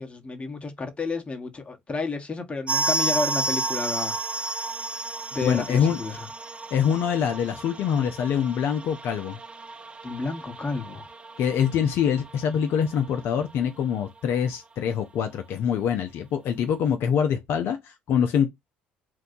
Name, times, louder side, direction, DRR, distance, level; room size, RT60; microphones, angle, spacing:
voice 1, 0.0-4.1 4.4-4.5 5.3-6.3 10.0-11.1, left 4 dB, 25° left, 1.0 m, -31 dB
sound 1, 2.7-13.2 13.5-13.6 13.8-13.9 14.5-14.6, right 3 dB, 25° right, 0.4 m, -32 dB
voice 2, 5.4-6.0 6.7-9.4 11.4-18.5, left 8 dB, 65° left, 0.5 m, -24 dB
2.6 x 2.2 x 3.7 m
supercardioid pair, 70°, 4 cm